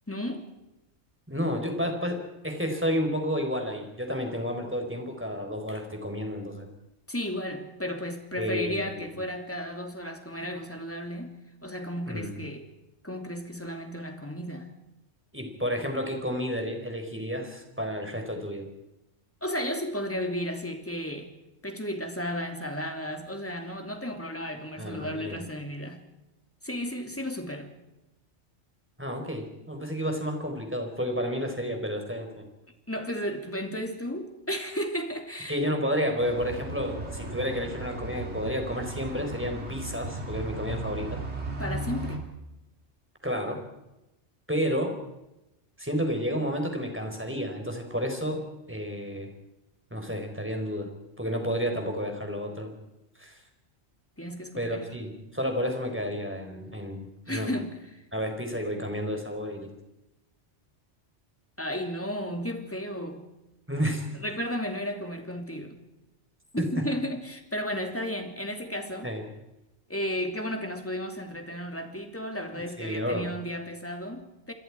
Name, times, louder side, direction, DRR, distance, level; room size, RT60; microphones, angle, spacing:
voice 1, 0.1-0.5 7.1-11.3 11.6-12.7 13.0-14.7 19.4-21.3 21.6-26.0 26.6-27.7 32.9-35.6 41.6-42.3 54.2-54.9 57.3-57.7 61.6-63.2 64.1-65.8 66.5-69.1 69.9-74.5, equal, 10° left, 4 dB, 2.9 m, -33 dB
voice 2, 1.3-6.7 8.4-9.1 12.1-12.3 15.3-18.6 24.8-25.4 29.0-32.4 35.5-41.2 43.2-43.6 44.5-44.9 45.8-48.4 48.7-49.3 49.9-50.9 51.2-52.7 53.2-53.4 54.6-57.5 58.1-59.7 63.7-64.1 66.6-66.7 69.0-69.3 72.6-73.3, equal, 10° right, 4 dB, 4.2 m, -31 dB
sound 1, 36.2-42.2, right 2 dB, 65° right, 3.5 m, -36 dB
28.0 x 21.5 x 4.8 m, 0.94 s
omnidirectional pair, 1.2 m